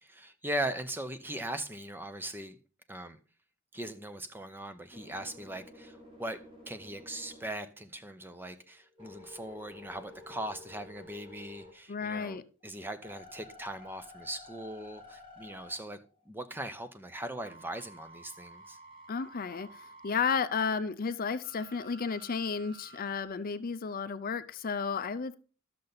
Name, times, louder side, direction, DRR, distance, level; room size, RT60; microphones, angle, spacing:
voice 1, 0.0-2.6 2.9-3.2 3.7-16.0 16.3-18.8, right 1 dB, 10° right, 0.7 m, -40 dB
sound 1, 4.7-8.1 8.6-12.1 12.6-16.3 17.4-20.2 21.4-23.2, left 1 dB, 25° right, 2.1 m, -52 dB
voice 2, 11.9-12.4 19.1-25.3, left 5 dB, 45° left, 0.5 m, -33 dB
12.5 x 6.7 x 4.0 m
head